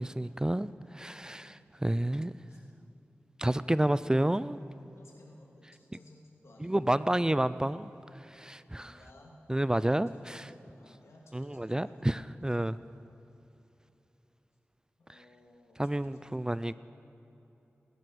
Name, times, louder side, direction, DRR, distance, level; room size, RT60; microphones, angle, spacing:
voice 1, 0.0-2.3 3.4-4.6 6.6-7.9 8.3-9.0 9.5-10.1 11.3-12.7 15.8-16.7, right 1 dB, 15° right, 16 dB, 0.4 m, -29 dB
voice 2, 1.1-1.7 2.5-2.6 5.0-7.1 8.7-9.4 10.1-12.3 15.0-16.7, left 1 dB, 80° left, -1 dB, 2.6 m, -58 dB
18.5 x 11.0 x 6.3 m, 3.0 s
cardioid pair, 45°, 5 cm